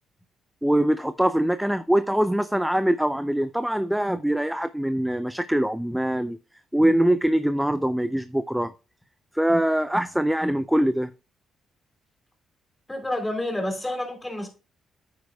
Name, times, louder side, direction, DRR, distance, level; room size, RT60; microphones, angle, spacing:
voice 1, 0.6-6.4 6.7-8.7 9.3-11.1, right 1 dB, 5° right, 0.4 m, -23 dB
voice 2, 12.9-14.5, left 1 dB, 10° left, 3.2 m, -29 dB
9.4 x 9.0 x 2.2 m
cardioid pair, 90°, 0 cm